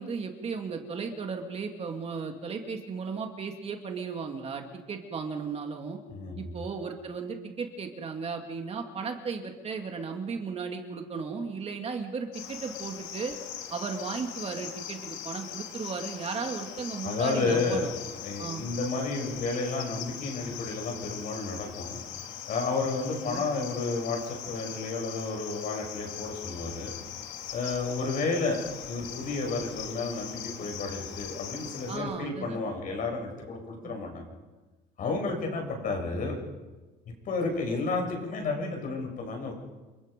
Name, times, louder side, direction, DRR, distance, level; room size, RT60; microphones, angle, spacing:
voice 1, 0.0-6.0 6.4-13.4 13.7-17.9 18.4-18.6 23.1-23.4 31.9-32.6 33.8-33.9, right 5 dB, 30° right, 3 dB, 2.5 m, -35 dB
voice 2, 6.1-6.5 17.0-17.9 18.2-22.0 22.5-26.9 27.5-34.3 35.0-36.4 37.3-39.5, left 3 dB, 45° left, 2 dB, 7.3 m, -31 dB
Cricket, 12.3-32.0, left 10 dB, 85° left, 2.3 m, -41 dB
29.5 x 22.5 x 5.4 m, 1.2 s
cardioid pair, 135°, 20 cm